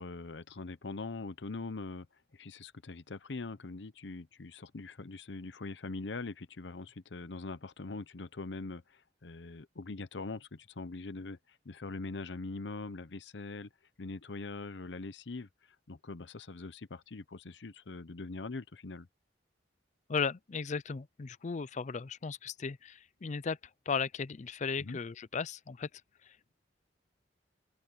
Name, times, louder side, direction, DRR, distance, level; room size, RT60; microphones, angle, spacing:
voice 1, 0.0-2.1 2.3-13.7 14.0-15.5 15.9-19.1 24.8-25.0, left 3 dB, 75° left, 0.8 m, -42 dB
voice 2, 20.1-23.6 23.9-25.9 26.3-26.4, left 5 dB, 40° left, 0.5 m, -36 dB
open air
head